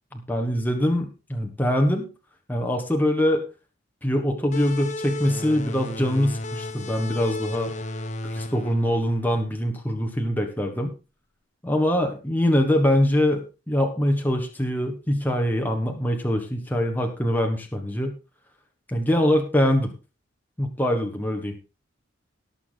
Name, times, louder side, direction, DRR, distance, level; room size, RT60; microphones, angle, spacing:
voice 1, 0.1-2.1 2.5-3.4 4.0-7.7 8.3-10.9 11.6-18.1 18.9-19.9 20.6-21.5, left 1 dB, 10° left, 2 dB, 1.4 m, -23 dB
sound 1, 4.5-9.8, left 2 dB, 35° left, 0.8 m, -34 dB
18.0 x 7.1 x 4.0 m, 0.31 s
head